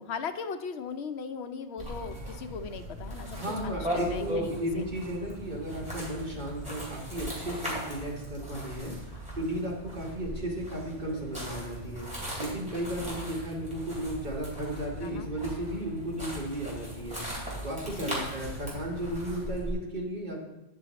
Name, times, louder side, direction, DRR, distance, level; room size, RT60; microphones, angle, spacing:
voice 1, 0.0-3.4 3.6-4.5 4.8-4.9 15.0-15.3 18.0-18.3, left 5 dB, 85° left, 8 dB, 0.9 m, -38 dB
sound 1, 1.8-19.7, equal, 5° right, 2.9 m, -38 dB
voice 2, 3.3-17.2 17.6-20.4, right 1 dB, 45° right, -3 dB, 1.8 m, -35 dB
9.6 x 5.6 x 4.0 m, 0.96 s
omnidirectional pair, 1.1 m